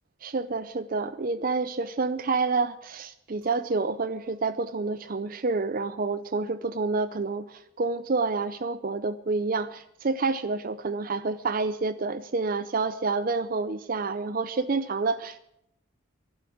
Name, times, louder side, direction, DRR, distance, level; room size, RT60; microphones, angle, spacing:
voice 1, 0.2-15.4, right 3 dB, 40° right, 14 dB, 0.5 m, -28 dB
Chink clink, 3.4-8.9, right 3 dB, 75° right, 4.8 m, -56 dB
12.0 x 11.5 x 8.6 m, 0.79 s
head